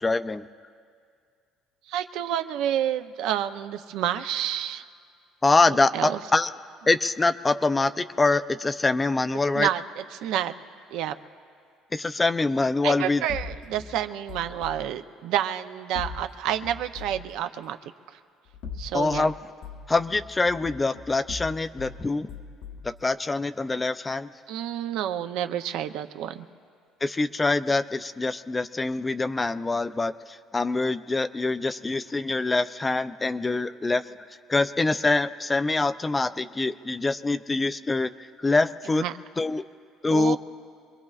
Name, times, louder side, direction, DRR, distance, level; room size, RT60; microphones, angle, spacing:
voice 1, 0.0-0.4 5.4-6.5 6.9-9.7 11.9-13.2 18.9-19.3 19.9-22.3 22.8-24.3 27.0-34.0 34.5-39.0 39.4-39.6 40.0-40.4, left 3 dB, 15° left, 13 dB, 0.4 m, -24 dB
voice 2, 1.9-4.8 5.7-6.2 9.5-10.5 10.9-11.2 12.8-17.9 18.8-19.3 24.5-26.4 39.0-39.2 40.1-40.4, right 11 dB, 75° right, 9 dB, 0.5 m, -29 dB
sound 1, 13.3-14.8 15.9-17.3 18.4-19.3 19.6-22.0 22.3-22.9, left 5 dB, 80° left, 1.1 m, -40 dB
25.5 x 21.5 x 2.4 m, 2.2 s
cardioid pair, 120°, 0 cm